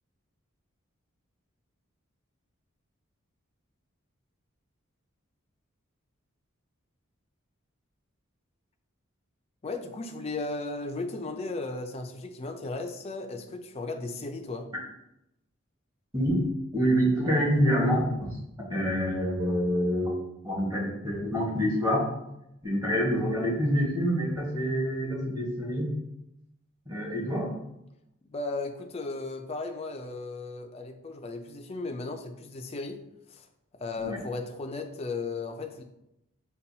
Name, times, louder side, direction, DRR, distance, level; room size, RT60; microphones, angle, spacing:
voice 1, 9.6-14.7 28.3-33.0 33.3-33.4 33.8-35.8, left 3 dB, 30° left, 5 dB, 0.4 m, -35 dB
voice 2, 16.7-18.3 18.7-20.1 20.4-22.1 22.6-25.9 26.9-27.5 34.0-34.2, equal, 15° right, -5 dB, 1.3 m, -26 dB
6.7 x 2.2 x 2.7 m, 0.85 s
head